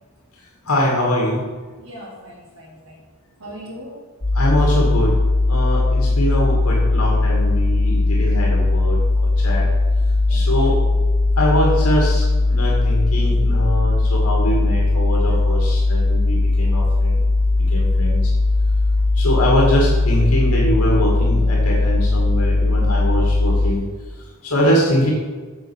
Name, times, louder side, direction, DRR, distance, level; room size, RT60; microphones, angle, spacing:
voice 1, 0.6-1.5 4.3-5.1 5.5-9.7 10.3-10.8 11.4-17.2 17.7-18.3 19.1-23.8 24.1-25.1, equal, 90° left, -2 dB, 2.1 m, -22 dB
voice 2, 1.8-3.0 3.4-4.0 10.3-11.0, equal, 85° right, -9 dB, 2.9 m, -38 dB
sound 1, 4.2-23.7, left 2 dB, 65° left, 1.9 m, -18 dB
7.7 x 6.8 x 7.2 m, 1.4 s
head